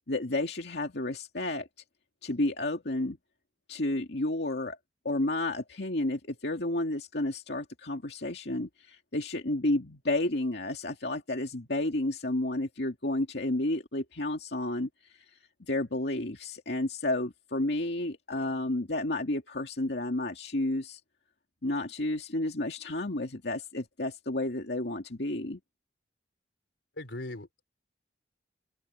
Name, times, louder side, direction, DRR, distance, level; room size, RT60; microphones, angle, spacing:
voice 1, 0.1-1.7 2.2-3.2 3.7-4.8 5.0-15.2 15.6-21.0 21.6-25.6, left 1 dB, 65° left, 2.4 m, -31 dB
voice 2, 27.0-27.6, left 1 dB, 85° left, 3.5 m, -39 dB
open air
head